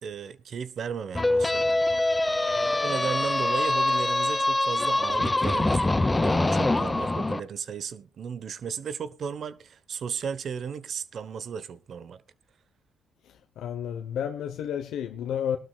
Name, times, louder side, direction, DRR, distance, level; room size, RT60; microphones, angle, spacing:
voice 1, 0.0-1.8 2.8-12.2, right 7 dB, 55° right, 1.0 m, -35 dB
sound 1, 1.1-7.4, left 2 dB, 15° left, 0.8 m, -24 dB
voice 2, 13.2-15.6, left 9 dB, 80° left, 1.0 m, -31 dB
22.0 x 12.0 x 2.4 m
cardioid pair, 90°, 0 cm